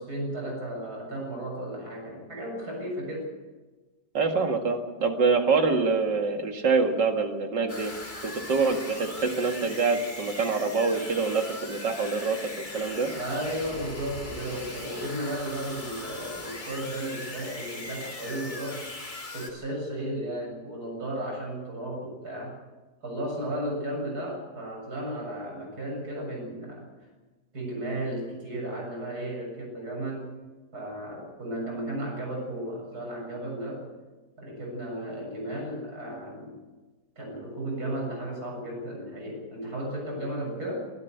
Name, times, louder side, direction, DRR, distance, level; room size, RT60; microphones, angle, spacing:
voice 1, 0.0-3.3 13.1-18.8 19.3-22.6 23.0-26.9 27.5-30.3 30.7-33.8 34.4-36.6 37.2-40.9, right 1 dB, 60° right, -1 dB, 7.8 m, -34 dB
voice 2, 4.1-7.9 8.2-12.4 12.7-13.1, right 4 dB, 90° right, 4 dB, 2.7 m, -25 dB
sound 1, 7.7-19.5, left 2 dB, 25° left, 2.5 m, -40 dB
23.5 x 12.0 x 9.3 m, 1.3 s
omnidirectional pair, 1.8 m